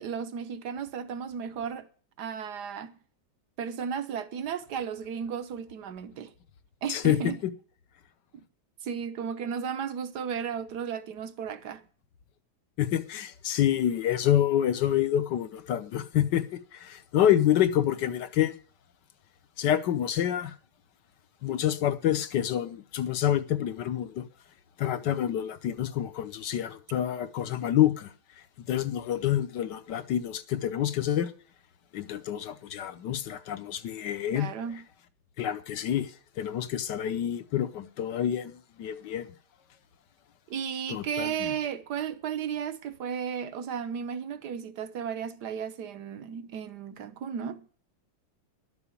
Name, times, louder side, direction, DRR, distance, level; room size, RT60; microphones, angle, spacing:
voice 1, 0.0-1.9 2.2-3.0 3.6-6.3 6.8-7.4 8.8-11.8 34.3-34.9 40.5-47.7, right 7 dB, 60° right, 1.4 m, -34 dB
voice 2, 6.9-7.3 12.8-18.5 19.6-20.5 21.4-24.2 24.8-31.3 31.9-34.5 35.4-39.3 40.9-41.5, left 11 dB, 65° left, 1.3 m, -27 dB
12.0 x 7.1 x 8.3 m
omnidirectional pair, 2.3 m